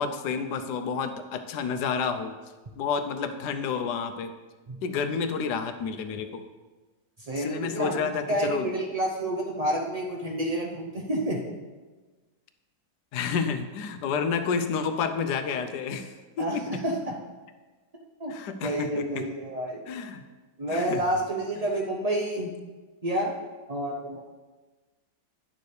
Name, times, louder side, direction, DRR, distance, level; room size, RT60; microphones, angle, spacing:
voice 1, 0.0-2.3 2.8-4.3 4.8-6.4 7.3-8.7 13.1-16.6 18.3-19.2 19.9-20.2 20.7-21.0, left 6 dB, 70° left, 9 dB, 1.2 m, -30 dB
voice 2, 7.2-8.0 8.3-11.4 16.4-17.1 18.2-18.3 18.6-19.8 20.6-22.5 23.0-23.3 23.7-24.3, right 1 dB, 85° right, -1 dB, 0.3 m, -29 dB
10.5 x 6.9 x 3.2 m, 1.3 s
omnidirectional pair, 1.9 m